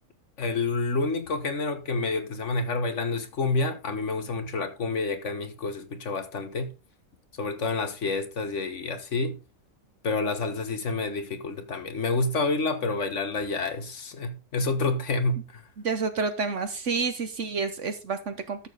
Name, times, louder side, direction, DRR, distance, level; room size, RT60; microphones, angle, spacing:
voice 1, 0.4-6.7 7.4-9.4 10.0-15.6, left 3 dB, 60° left, 1.6 m, -28 dB
voice 2, 15.8-18.7, right 4 dB, 60° right, 1.3 m, -29 dB
12.5 x 7.1 x 3.9 m
omnidirectional pair, 1.4 m